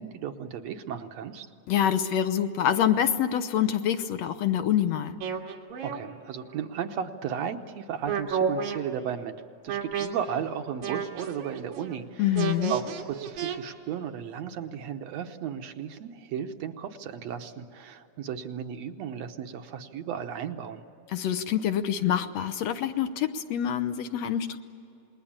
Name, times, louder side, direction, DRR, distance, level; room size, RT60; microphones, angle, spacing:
voice 1, 0.0-1.5 5.8-9.3 9.6-12.3 12.7-20.8, right 8 dB, 70° right, 6 dB, 2.0 m, -35 dB
voice 2, 1.7-5.2 12.2-12.7 21.1-24.6, left 10 dB, 70° left, 9 dB, 1.8 m, -26 dB
sound 1, 5.2-6.0 6.6-7.2 8.1-8.8 9.7-10.1 10.3-10.5 10.8-12.0 12.4-13.6, right 7 dB, 85° right, 3.3 m, -31 dB
27.5 x 21.0 x 8.8 m, 2.8 s
omnidirectional pair, 3.4 m